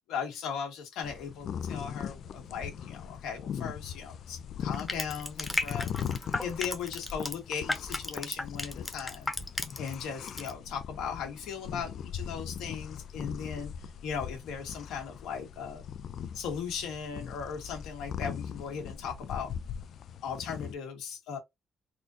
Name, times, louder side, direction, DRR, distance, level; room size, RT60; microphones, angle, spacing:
voice 1, 0.1-5.9 6.4-9.3 9.8-13.7 14.0-15.8 16.3-19.5 20.2-21.4, left 6 dB, 90° left, 1.8 m, -37 dB
sound 1, 1.0-20.7, left 8 dB, 65° left, 0.4 m, -40 dB
Crushing, 4.7-10.0 10.3-10.5, left 2 dB, 20° left, 0.9 m, -34 dB
4.2 x 2.5 x 2.7 m
cardioid pair, 90°, 0 cm